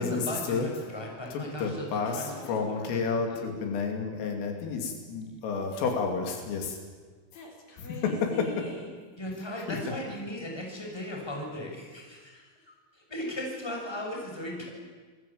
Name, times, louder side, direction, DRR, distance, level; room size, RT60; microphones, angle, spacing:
voice 1, 0.0-2.3 2.6-3.5 5.3-5.4 9.2-12.5 13.1-14.7, left 1 dB, 5° left, 0 dB, 6.0 m, -37 dB
voice 2, 1.3-6.8 7.8-7.9 9.7-9.8, left 4 dB, 80° left, 3 dB, 5.4 m, -31 dB
voice 3, 2.2-2.7 7.3-9.0 14.6-14.7, left 3 dB, 45° left, 1 dB, 5.1 m, -43 dB
28.5 x 20.5 x 8.7 m, 1.5 s
omnidirectional pair, 5.8 m